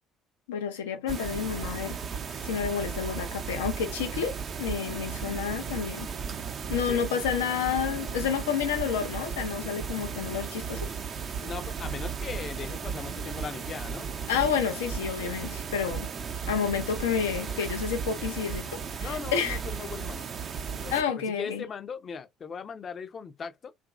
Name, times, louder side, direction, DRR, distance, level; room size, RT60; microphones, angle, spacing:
voice 1, 0.5-2.0 2.4-6.1 6.7-10.9 14.3-16.1 16.5-19.6 20.9-21.6, left 7 dB, 80° left, 0.7 m, -30 dB
sound 1, 1.1-21.0, right 6 dB, 45° right, 0.6 m, -35 dB
voice 2, 11.4-14.1 19.0-20.2 20.7-21.0 21.4-23.7, left 6 dB, 45° left, 0.6 m, -38 dB
2.9 x 2.5 x 2.4 m
hypercardioid pair, 60°, 0 cm